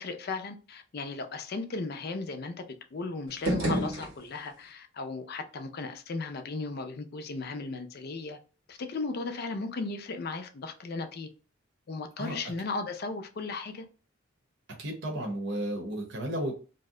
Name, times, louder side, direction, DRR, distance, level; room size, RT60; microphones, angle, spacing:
voice 1, 0.0-2.6 2.9-8.4 8.7-11.3 11.9-13.8, left 3 dB, 50° left, 0.4 m, -36 dB
sound 1, 3.3-4.7, right 1 dB, 85° right, 1.0 m, -31 dB
voice 2, 12.2-12.5 14.8-16.6, right 1 dB, 60° right, 0.8 m, -33 dB
2.7 x 2.1 x 3.6 m
head